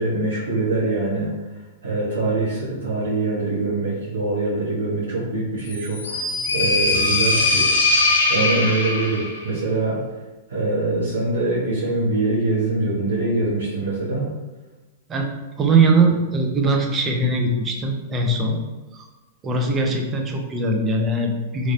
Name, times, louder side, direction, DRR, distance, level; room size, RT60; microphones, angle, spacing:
voice 1, 0.0-1.3 1.8-6.3 6.5-7.8 8.3-10.0 10.5-14.3, right 2 dB, 85° right, -8 dB, 1.1 m, -23 dB
sound 1, 5.7-9.4, left 3 dB, 75° left, 0.9 m, -21 dB
voice 2, 15.6-18.6 18.9-19.1 19.4-21.7, right 3 dB, 25° right, 2 dB, 0.6 m, -21 dB
3.9 x 3.1 x 2.6 m, 1.2 s
hypercardioid pair, 110°, 0 cm